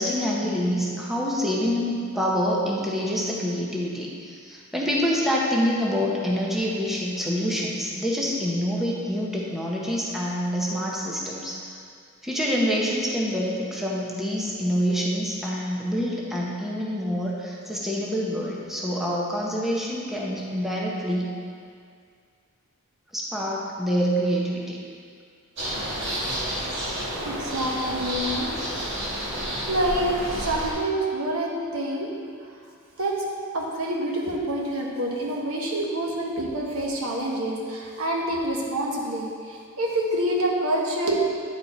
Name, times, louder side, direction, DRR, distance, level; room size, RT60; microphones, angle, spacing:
voice 1, 0.0-11.5 12.2-21.3 23.1-24.8, equal, ahead, -4 dB, 0.8 m, -26 dB
sound 1, 25.6-30.7, equal, 55° right, 1.7 m, -30 dB
voice 2, 27.2-29.1 29.7-32.1 32.4-32.5 33.0-33.2 33.5-41.2, right 1 dB, 80° right, -2 dB, 1.1 m, -27 dB
9.4 x 4.3 x 4.2 m, 2.2 s
head